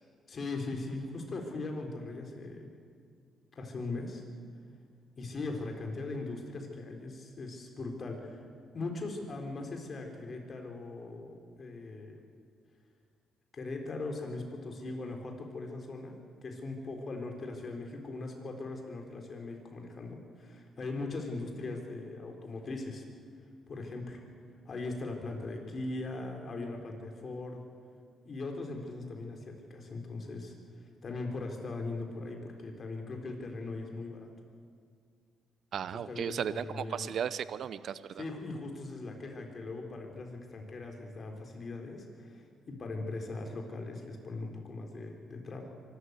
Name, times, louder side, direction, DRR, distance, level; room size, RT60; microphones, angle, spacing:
voice 1, 0.3-2.7 3.5-4.2 5.2-8.4 8.7-12.2 13.5-23.0 23.7-24.3 24.7-27.6 28.2-30.5 30.8-34.3 36.1-37.1 38.2-45.7, left 3 dB, 45° left, 2 dB, 4.0 m, -40 dB
voice 2, 35.7-38.2, right 8 dB, 65° right, 16 dB, 0.7 m, -35 dB
24.5 x 13.0 x 8.2 m, 2.2 s
cardioid pair, 90°, 0 cm